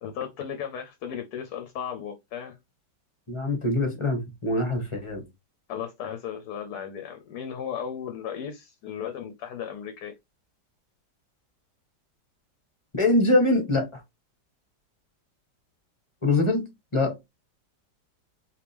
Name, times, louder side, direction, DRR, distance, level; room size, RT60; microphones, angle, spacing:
voice 1, 0.0-2.6 5.7-10.2, left 8 dB, 65° left, 1.2 m, -35 dB
voice 2, 3.3-5.2 12.9-14.0 16.2-16.6 16.9-17.2, left 2 dB, 20° left, 1.3 m, -23 dB
5.1 x 3.1 x 3.4 m
omnidirectional pair, 1.9 m